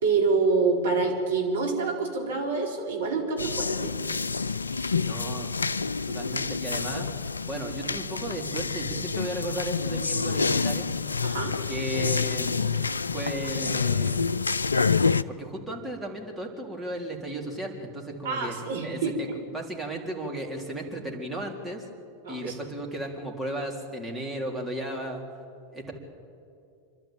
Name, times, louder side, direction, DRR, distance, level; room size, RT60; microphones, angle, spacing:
voice 1, 0.0-4.0 11.2-11.6 18.2-19.2 22.3-22.6, right 4 dB, 75° right, 1 dB, 4.0 m, -26 dB
sound 1, 3.4-15.2, left 5 dB, 85° left, 0.4 m, -28 dB
voice 2, 5.0-5.6 6.0-7.1 7.5-10.9 11.7-14.4 15.3-18.6 18.8-21.8 22.3-25.2 25.7-25.9, right 1 dB, 5° right, -2 dB, 4.0 m, -35 dB
27.0 x 12.0 x 9.0 m, 2.5 s
figure-of-eight pair, 90°, 0 cm